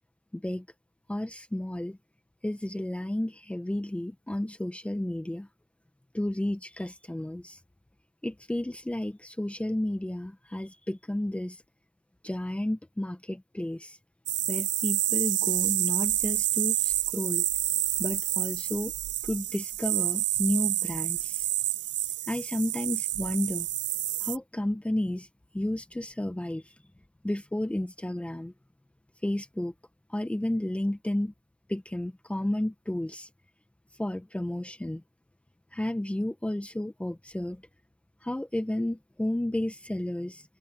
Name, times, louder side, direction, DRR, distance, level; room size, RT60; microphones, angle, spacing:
voice 1, 0.3-0.6 1.1-2.0 2.4-5.5 6.1-7.6 8.2-11.6 12.2-14.0 14.5-17.4 18.0-18.9 19.2-21.5 22.3-23.7 24.2-25.3 25.5-26.6 27.2-28.5 29.2-29.7 30.1-31.3 31.7-33.3 34.0-35.0 35.7-37.6 38.2-40.4, left 1 dB, 5° left, 1.4 m, -32 dB
sound 1, 14.3-24.4, right 14 dB, 80° right, 0.4 m, -28 dB
cardioid pair, 140°, 18 cm